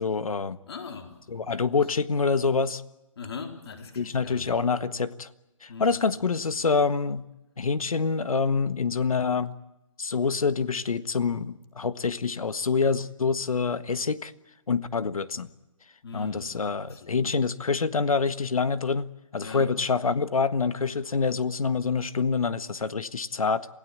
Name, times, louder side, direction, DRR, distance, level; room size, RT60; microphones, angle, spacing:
voice 1, 0.0-0.6 1.3-2.8 4.0-5.3 5.6-7.2 7.6-9.5 10.0-14.3 14.7-15.5 16.1-23.7, left 5 dB, 80° left, 1.5 m, -26 dB
voice 2, 0.6-1.2 3.2-4.6 5.7-6.2 16.0-17.2 19.4-19.7, left 5 dB, 50° left, 4.1 m, -41 dB
28.0 x 17.0 x 8.9 m
hypercardioid pair, 165°, 18 cm